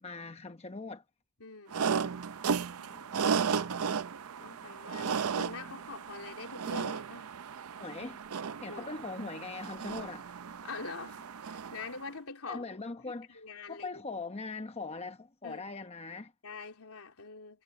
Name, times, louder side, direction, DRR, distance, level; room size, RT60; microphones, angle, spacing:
voice 1, 0.0-1.0 7.8-8.2 8.6-10.3 12.5-13.4 13.7-16.3, left 3 dB, 30° left, 0.9 m, -41 dB
voice 2, 1.4-2.3 2.7-3.9 4.4-7.3 8.7-10.1 10.6-12.7 13.0-14.0 15.4-15.6 16.4-17.6, left 4 dB, 80° left, 3.4 m, -46 dB
sound 1, 1.7-12.0, right 6 dB, 75° right, 0.6 m, -35 dB
head